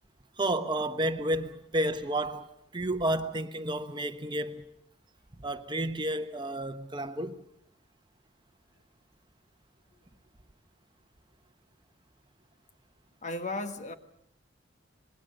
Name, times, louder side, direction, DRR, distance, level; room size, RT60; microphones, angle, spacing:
voice 1, 0.4-4.6 5.4-7.4, right 1 dB, 25° right, 1.1 m, -31 dB
voice 2, 13.2-13.9, left 2 dB, 40° left, 1.5 m, -35 dB
26.0 x 20.5 x 6.7 m
head